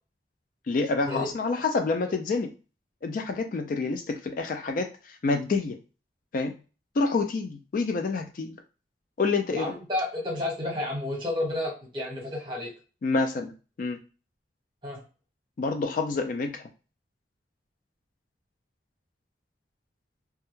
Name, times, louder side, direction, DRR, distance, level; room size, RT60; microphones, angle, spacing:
voice 1, 0.7-2.5 3.0-5.8 6.3-6.5 7.0-8.6 9.2-9.7 13.0-13.5 13.8-14.0 15.6-16.6, left 3 dB, 50° left, 5 dB, 0.3 m, -27 dB
voice 2, 9.5-12.7 14.8-15.0, left 1 dB, 30° right, -2 dB, 1.0 m, -31 dB
2.3 x 2.1 x 3.0 m, 0.33 s
head